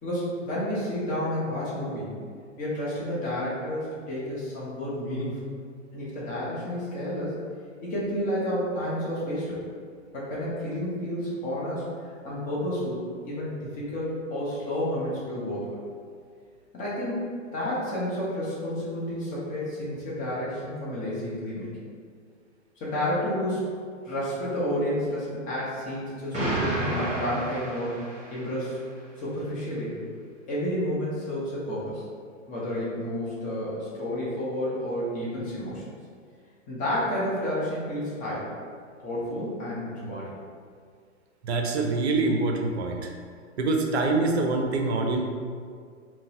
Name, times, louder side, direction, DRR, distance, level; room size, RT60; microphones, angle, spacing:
voice 1, 0.0-2.2 2.6-5.4 5.9-7.4 7.8-9.6 10.1-11.9 12.2-15.8 16.7-21.7 22.8-23.6 24.0-28.0 28.3-28.8 29.2-30.0 30.5-32.0 32.5-35.9 36.7-38.5 39.0-40.3, equal, 20° left, -8 dB, 0.7 m, -30 dB
Explosion, 26.3-28.5, right 1 dB, 20° right, 1.0 m, -30 dB
voice 2, 41.4-43.1 43.6-45.2, right 3 dB, 55° right, 2 dB, 0.5 m, -25 dB
3.7 x 2.1 x 2.8 m, 2.1 s
figure-of-eight pair, 115°, 39 cm